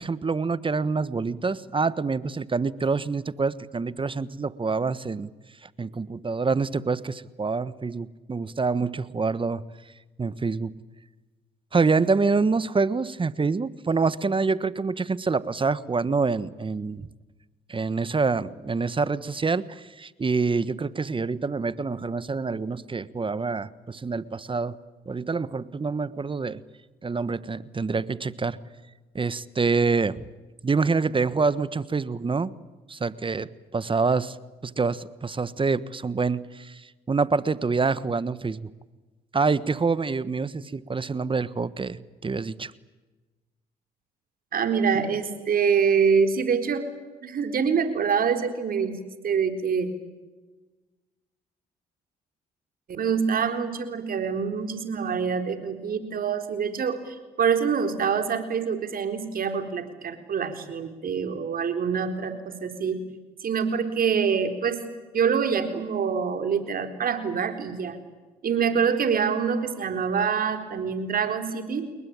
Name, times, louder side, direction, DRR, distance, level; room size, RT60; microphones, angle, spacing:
voice 1, 0.0-5.3 5.8-9.6 10.2-10.7 11.7-17.1 17.7-24.8 25.1-26.6 27.0-28.6 29.1-30.3 30.6-32.5 32.9-34.4 34.6-38.7 39.3-42.7, right 4 dB, 30° right, 17 dB, 1.3 m, -26 dB
voice 2, 44.5-46.9 47.2-49.9 52.9-63.0 63.4-64.8 65.1-68.0 68.4-71.9, right 6 dB, 55° right, 7 dB, 4.1 m, -25 dB
29.5 x 21.5 x 8.8 m, 1.2 s
supercardioid pair, 60°, 17 cm